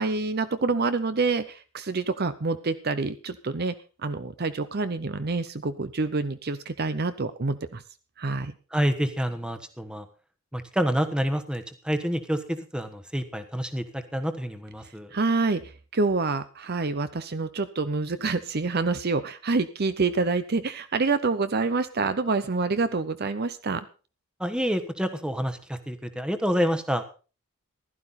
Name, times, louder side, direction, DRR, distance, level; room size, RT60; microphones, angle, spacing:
voice 1, 0.0-3.7 4.0-7.8 8.2-8.5 15.1-15.6 15.9-23.8, right 3 dB, 45° right, 12 dB, 0.7 m, -27 dB
voice 2, 8.7-10.1 10.5-15.1 24.4-27.0, equal, 5° right, 8 dB, 1.2 m, -28 dB
15.5 x 12.0 x 4.1 m, 0.35 s
head